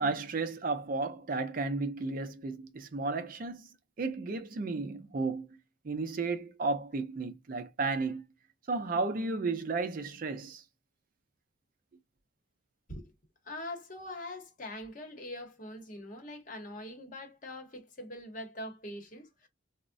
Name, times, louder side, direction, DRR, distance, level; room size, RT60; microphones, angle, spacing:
voice 1, 0.0-3.7 4.0-5.5 5.8-8.2 8.7-10.6, right 3 dB, 45° right, 0.4 m, -33 dB
voice 2, 13.4-19.5, left 1 dB, 40° left, 0.9 m, -43 dB
3.4 x 2.0 x 2.5 m
head